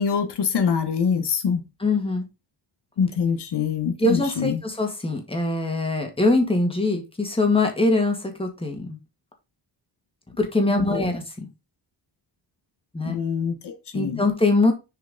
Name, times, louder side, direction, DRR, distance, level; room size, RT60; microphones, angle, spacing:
voice 1, 0.0-1.6 3.0-4.6 10.7-11.1 13.0-14.2, left 6 dB, 65° left, 1.0 m, -25 dB
voice 2, 1.8-2.3 4.0-9.0 10.4-11.2 12.9-13.2 13.9-14.7, left 2 dB, 15° left, 1.8 m, -22 dB
6.6 x 4.7 x 3.7 m
wide cardioid pair, 120°, 43 cm